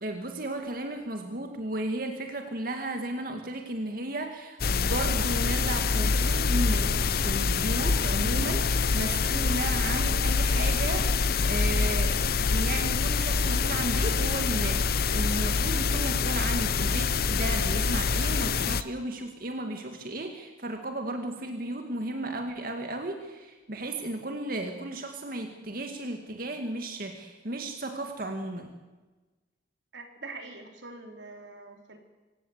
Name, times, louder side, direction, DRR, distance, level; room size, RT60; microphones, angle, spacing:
voice 1, 0.0-11.2 11.4-12.2 12.5-28.7, right 1 dB, 50° right, 4 dB, 2.2 m, -34 dB
sound 1, 4.6-18.8, left 4 dB, 55° left, 0.7 m, -25 dB
voice 2, 29.9-32.0, right 3 dB, 90° right, 4 dB, 4.1 m, -44 dB
26.0 x 17.5 x 8.2 m, 1.2 s
head